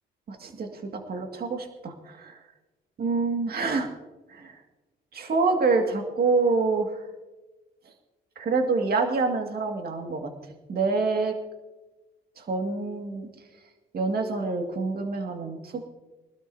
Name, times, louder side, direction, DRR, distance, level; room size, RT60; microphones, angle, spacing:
voice 1, 0.3-2.4 3.0-3.9 4.3-4.6 5.1-7.1 7.9-8.0 8.4-10.3 10.7-11.4 12.4-13.3 13.9-15.8, right 4 dB, 50° right, 3 dB, 2.1 m, -27 dB
23.5 x 12.5 x 2.7 m, 1.1 s
cardioid pair, 90°, 20 cm